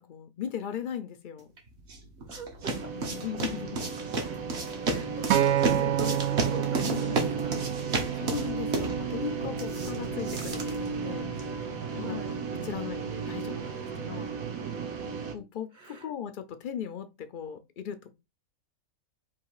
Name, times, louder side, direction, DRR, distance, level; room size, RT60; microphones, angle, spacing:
voice 1, 0.0-1.5 2.9-4.0 8.1-11.3 12.0-12.2 12.6-14.3 15.3-18.1, left 9 dB, 75° left, 0.4 m, -38 dB
sound 1, 1.6-11.6, right 3 dB, 55° right, 1.3 m, -34 dB
voice 2, 2.3-3.1 4.8-7.6 11.9-12.4 15.7-16.1, left 1 dB, 40° right, 1.1 m, -39 dB
sound 2, 2.6-15.3, right 5 dB, 85° right, 1.3 m, -35 dB
Acoustic guitar, 5.3-9.6 10.4-10.5, right 11 dB, 70° right, 0.9 m, -29 dB
3.9 x 2.9 x 4.7 m
omnidirectional pair, 1.4 m